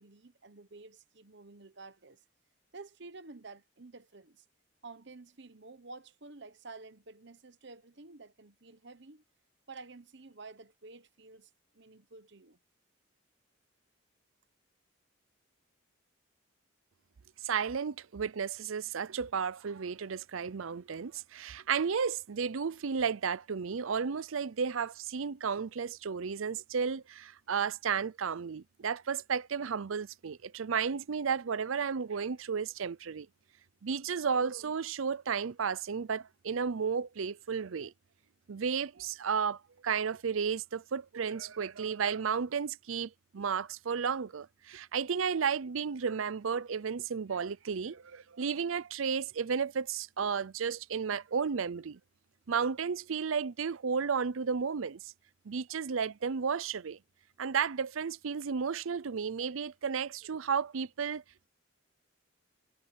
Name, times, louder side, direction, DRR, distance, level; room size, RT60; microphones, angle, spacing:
voice 1, 0.0-2.2 2.7-4.4 4.8-9.2 9.7-11.5 11.7-12.6, right 3 dB, 55° right, 1.1 m, -51 dB
voice 2, 17.4-33.3 33.8-37.9 38.5-52.0 52.5-55.1 55.5-57.0 57.4-61.2, right 6 dB, 75° right, 0.5 m, -33 dB
head